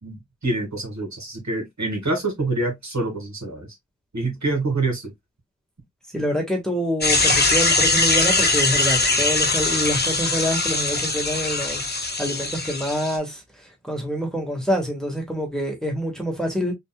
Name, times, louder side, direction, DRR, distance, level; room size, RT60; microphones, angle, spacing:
voice 1, 0.0-3.7 4.1-5.1, right 2 dB, 65° right, 2.1 m, -26 dB
voice 2, 6.1-11.9 12.2-16.7, equal, ahead, 1.5 m, -26 dB
sound 1, 7.0-13.2, left 3 dB, 35° left, 1.1 m, -21 dB
4.0 x 3.4 x 2.2 m
wide cardioid pair, 65°, 30 cm